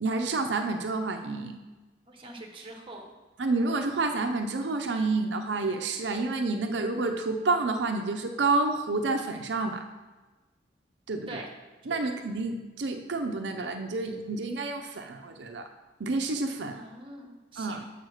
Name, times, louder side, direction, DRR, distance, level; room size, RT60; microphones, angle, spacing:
voice 1, 0.0-1.6 3.4-9.8 11.1-11.4 11.9-15.7 16.0-16.8 17.6-17.8, right 3 dB, 85° right, 5 dB, 0.6 m, -29 dB
voice 2, 2.1-3.1 11.3-11.5 11.9-12.1 16.7-17.8, right 1 dB, 30° right, 2 dB, 1.1 m, -44 dB
6.4 x 5.0 x 6.3 m, 1.2 s
head